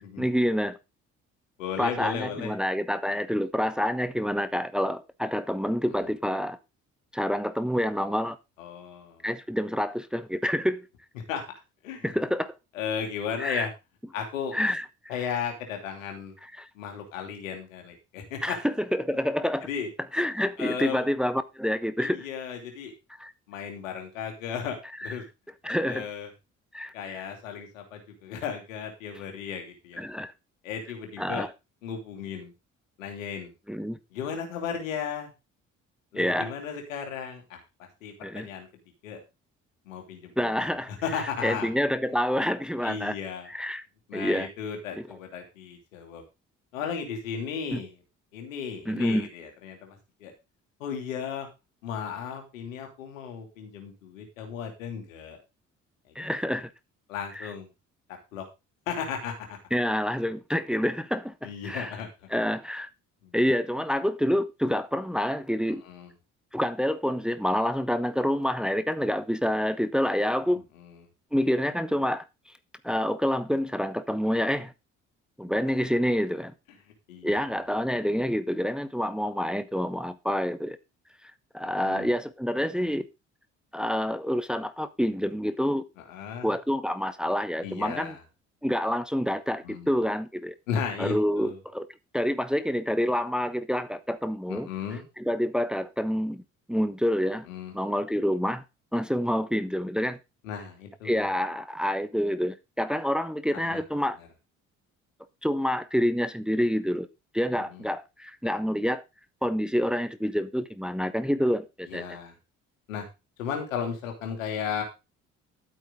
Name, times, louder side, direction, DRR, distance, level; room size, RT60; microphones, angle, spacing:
voice 1, 0.2-0.8 1.8-6.6 7.1-8.4 9.2-10.8 12.0-12.5 13.4-13.7 14.5-14.8 16.6-16.7 18.4-19.7 20.1-22.3 23.2-23.3 25.6-26.0 26.7-26.9 30.0-30.3 31.2-31.5 33.7-34.0 36.1-36.5 38.2-38.5 40.4-40.9 41.4-43.2 43.5-43.8 44.1-44.5 47.7-47.8 48.9-49.3 56.1-56.7 57.3-57.5 59.7-61.9 62.3-62.9 63.3-65.8 66.5-70.6 71.3-72.2 72.8-74.7 75.4-76.5 77.2-80.8 81.5-83.0 83.7-85.8 86.4-88.1 88.6-90.5 91.0-91.9 92.1-94.7 95.2-96.4 96.7-97.4 97.7-98.6 98.9-100.2 101.0-104.2 105.4-107.1 107.3-109.0 109.4-112.0, equal, ahead, 1.3 m, -27 dB
voice 2, 1.6-2.6 5.9-6.1 8.6-9.2 11.3-11.4 11.8-12.2 12.7-13.7 14.1-14.6 15.1-16.3 16.7-18.6 19.6-19.9 20.6-21.0 22.0-22.9 23.5-25.2 25.9-26.3 26.9-30.0 30.6-31.5 31.8-32.5 33.0-33.5 34.1-35.3 36.1-37.6 38.0-38.7 39.0-39.2 39.9-41.7 42.8-43.5 44.1-46.2 46.7-48.0 48.3-50.3 50.8-51.5 51.8-55.4 56.5-56.6 57.1-57.7 58.3-58.4 58.9-59.6 61.4-62.1 63.2-63.3 65.8-66.1 70.8-71.0 77.1-77.4 81.6-82.1 86.0-86.5 87.6-88.2 89.6-89.9 90.7-91.6 94.5-95.0 97.4-97.7 100.4-101.3 103.5-103.8 104.2-104.3 107.6-107.8 111.9-112.3 112.9-113.0 113.4-114.8, left 7 dB, 80° left, 3.0 m, -35 dB
12.0 x 9.1 x 3.9 m
figure-of-eight pair, 45°, 39 cm